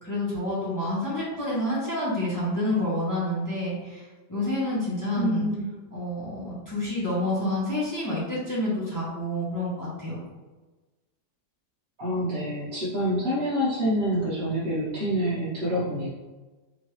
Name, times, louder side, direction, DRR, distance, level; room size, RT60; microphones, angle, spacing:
voice 1, 0.0-5.5 5.9-10.2, left 1 dB, 15° left, -8 dB, 0.9 m, -28 dB
voice 2, 5.2-5.7 12.0-16.1, equal, 40° right, -10 dB, 1.1 m, -27 dB
4.5 x 2.7 x 3.1 m, 1.2 s
omnidirectional pair, 1.8 m